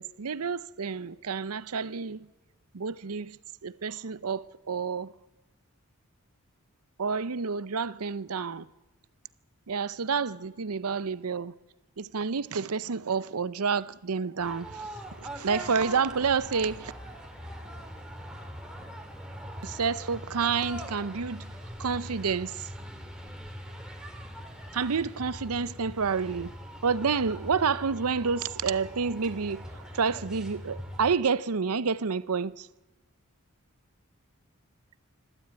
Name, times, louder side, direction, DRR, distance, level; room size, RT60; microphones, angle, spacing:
voice 1, 0.0-2.3 2.7-3.4 3.6-5.1 7.0-8.7 9.7-11.5 12.0-14.9 15.2-16.9 19.6-21.5 21.8-22.7 24.7-26.5 26.8-32.7, right 5 dB, 85° right, 0.7 m, -29 dB
sound 1, 14.4-31.2, equal, 5° right, 2.4 m, -42 dB
25.5 x 13.0 x 8.8 m
head